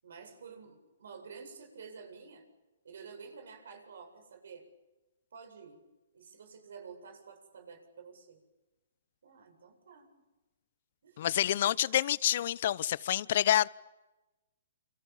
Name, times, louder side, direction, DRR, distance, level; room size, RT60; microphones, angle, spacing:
voice 1, 0.0-2.4 2.8-4.7 5.3-5.8 6.1-8.4 9.2-10.1 11.0-11.3, right 5 dB, 75° right, 8.0 m, -50 dB
voice 2, 11.2-13.7, left 11 dB, 55° left, 0.9 m, -28 dB
28.5 x 28.0 x 7.3 m
hypercardioid pair, 140°, 0 cm